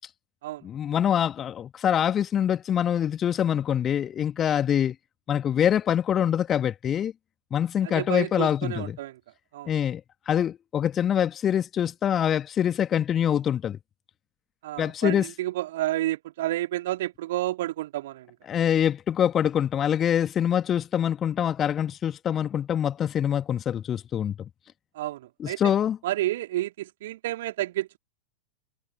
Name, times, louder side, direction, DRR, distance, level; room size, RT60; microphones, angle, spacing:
voice 1, 0.6-5.0 5.3-7.1 7.5-9.0 9.7-13.8 14.8-15.2 18.5-24.4 25.4-26.0, left 9 dB, 25° left, 2.0 m, -25 dB
voice 2, 7.8-9.2 9.5-9.7 14.6-18.3 24.9-25.6 26.0-28.0, right 15 dB, 55° right, 2.9 m, -30 dB
figure-of-eight pair, 90°, 0 cm